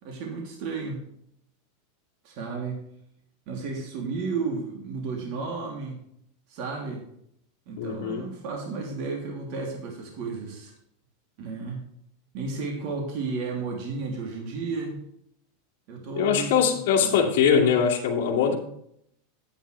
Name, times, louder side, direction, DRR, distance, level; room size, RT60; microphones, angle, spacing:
voice 1, 0.0-1.0 2.2-2.8 3.5-6.0 6.5-7.0 7.7-10.7 11.4-11.8 12.3-15.0 15.9-17.3, right 4 dB, 50° right, 0 dB, 3.0 m, -33 dB
voice 2, 7.8-8.3 16.2-18.5, left 7 dB, 60° left, -2 dB, 2.3 m, -22 dB
10.0 x 9.8 x 3.4 m, 0.71 s
supercardioid pair, 155°, 0 cm